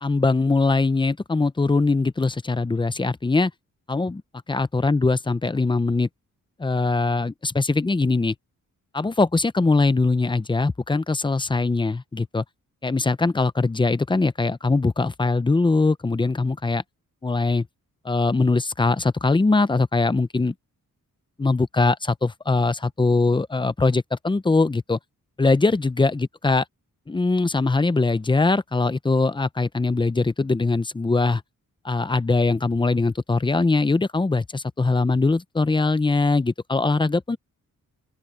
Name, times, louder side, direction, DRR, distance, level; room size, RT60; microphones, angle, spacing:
voice 1, 0.0-3.5 3.9-4.2 4.5-6.1 6.6-8.3 8.9-12.4 12.8-16.8 17.2-17.7 18.0-20.5 21.4-25.0 25.4-26.6 27.1-31.4 31.8-37.4, left 3 dB, 15° left, 0.6 m, -21 dB
open air
wide cardioid pair, 150°, 33 cm